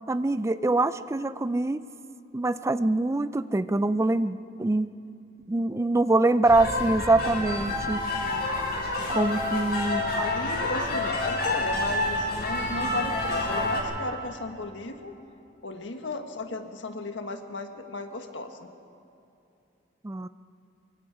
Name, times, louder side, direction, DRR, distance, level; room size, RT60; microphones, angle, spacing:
voice 1, 0.1-1.9 2.3-4.9 5.5-8.0 9.1-10.0 20.0-20.3, right 2 dB, 15° right, 14 dB, 0.4 m, -24 dB
sound 1, 6.4-13.8, left 2 dB, 60° left, 5.7 m, -28 dB
voice 2, 8.0-8.5 8.8-9.2 10.2-15.1 15.6-18.7, left 2 dB, 85° left, 6 dB, 1.5 m, -35 dB
24.5 x 23.0 x 4.8 m, 2.7 s
head